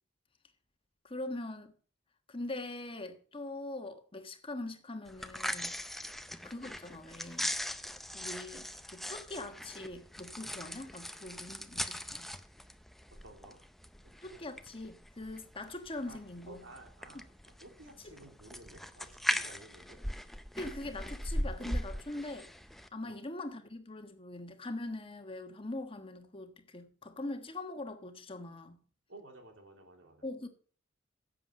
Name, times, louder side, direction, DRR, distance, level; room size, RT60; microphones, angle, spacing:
voice 1, 1.0-1.7 2.3-5.8 6.4-7.5 8.1-8.7 8.9-12.2 14.2-16.6 18.0-18.1 20.6-22.5 22.9-28.8 30.2-30.5, left 2 dB, 30° left, 1.4 m, -42 dB
sound 1, 5.1-22.9, equal, ahead, 0.6 m, -40 dB
voice 2, 13.2-13.6 14.3-14.4 16.1-16.2 16.5-20.0 23.0-23.2 29.1-30.3, right 2 dB, 85° right, 3.3 m, -54 dB
11.0 x 7.6 x 6.3 m
head